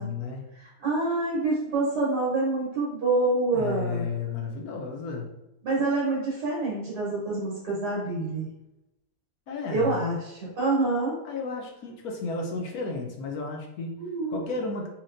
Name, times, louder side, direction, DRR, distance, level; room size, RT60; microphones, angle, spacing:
voice 1, 0.0-0.4 3.5-5.3 9.5-9.9 11.2-14.0 14.3-14.9, left 4 dB, 70° left, 1 dB, 1.1 m, -33 dB
voice 2, 0.6-4.0 5.6-8.5 9.7-11.1 14.0-14.4, right 2 dB, 75° right, -6 dB, 1.7 m, -26 dB
4.2 x 2.9 x 2.5 m, 0.92 s
omnidirectional pair, 1.8 m